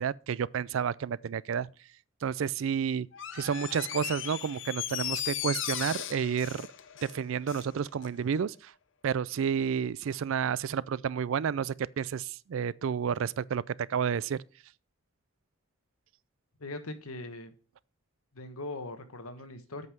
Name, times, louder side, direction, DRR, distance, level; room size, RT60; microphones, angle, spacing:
voice 1, 0.0-1.7 2.2-3.1 3.3-6.7 7.0-8.7 9.0-14.4, right 7 dB, 70° right, 0.4 m, -30 dB
Door, 3.1-7.7 8.0-8.1, left 11 dB, 60° left, 0.6 m, -37 dB
voice 2, 16.6-17.5 18.3-19.9, left 2 dB, 90° left, 1.3 m, -40 dB
8.2 x 5.4 x 6.0 m
head